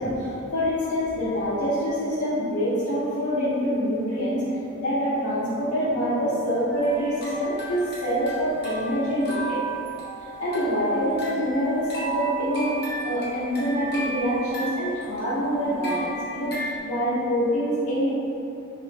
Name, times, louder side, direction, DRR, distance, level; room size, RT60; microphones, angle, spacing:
voice 1, 0.0-4.4 4.8-9.6 10.4-12.8 13.0-18.1, equal, 90° left, -10 dB, 0.7 m, -25 dB
sound 1, 6.7-16.8, right 2 dB, 50° left, 0.9 m, -35 dB
3.4 x 3.0 x 3.1 m, 2.7 s
head